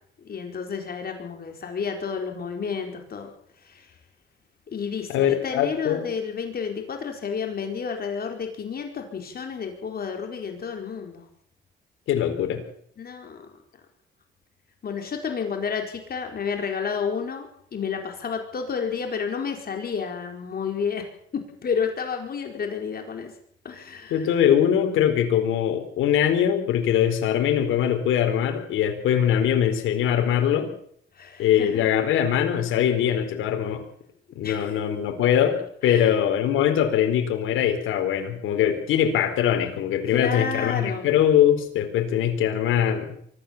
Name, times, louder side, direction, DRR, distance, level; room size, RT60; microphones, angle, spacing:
voice 1, 0.2-3.3 3.6-3.9 4.7-11.2 13.0-13.5 14.8-21.0 21.3-23.3 23.6-24.3 31.1-31.8 34.4-34.8 35.8-36.1 40.1-41.1, left 6 dB, 50° left, 4 dB, 4.7 m, -31 dB
voice 2, 5.1-6.0 12.1-12.6 24.1-30.7 31.4-33.8 34.4-35.6 35.8-43.2, left 9 dB, 85° left, 6 dB, 4.2 m, -22 dB
24.5 x 14.5 x 7.3 m, 0.64 s
cardioid pair, 90°, 20 cm